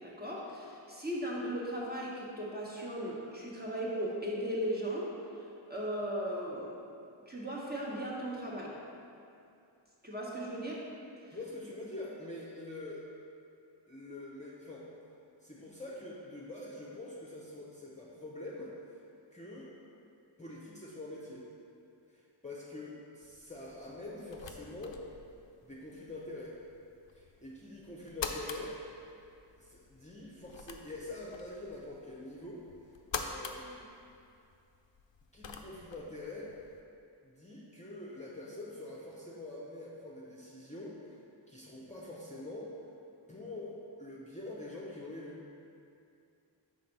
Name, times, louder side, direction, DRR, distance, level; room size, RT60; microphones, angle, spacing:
voice 1, 0.0-5.1 5.7-6.7 7.3-8.8 10.0-10.8, equal, 20° right, -5 dB, 1.2 m, -37 dB
voice 2, 11.3-13.0 13.9-14.9 15.4-19.0 19.3-19.7 20.4-21.4 22.1-25.0 25.6-26.5 27.1-28.8 29.6-32.6 33.2-33.8 35.3-36.5 37.2-41.2 41.5-42.7 43.3-45.4, left 2 dB, 15° left, -6 dB, 0.7 m, -45 dB
sound 1, 23.2-36.8, left 5 dB, 75° left, 0.5 m, -47 dB
5.7 x 3.5 x 5.3 m, 2.5 s
wide cardioid pair, 40°, 45 cm